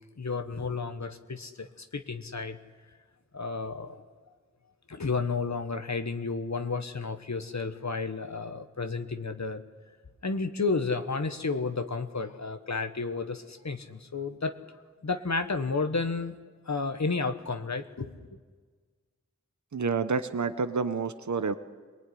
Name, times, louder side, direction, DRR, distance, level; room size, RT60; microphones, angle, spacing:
voice 1, 0.2-2.6 3.3-4.0 4.9-9.6 10.2-14.5 15.0-16.4 16.7-18.3, left 4 dB, 65° left, 8 dB, 1.3 m, -32 dB
voice 2, 19.7-21.5, right 5 dB, 70° right, 11 dB, 1.0 m, -29 dB
23.0 x 19.5 x 10.0 m, 1.5 s
wide cardioid pair, 40°, 30 cm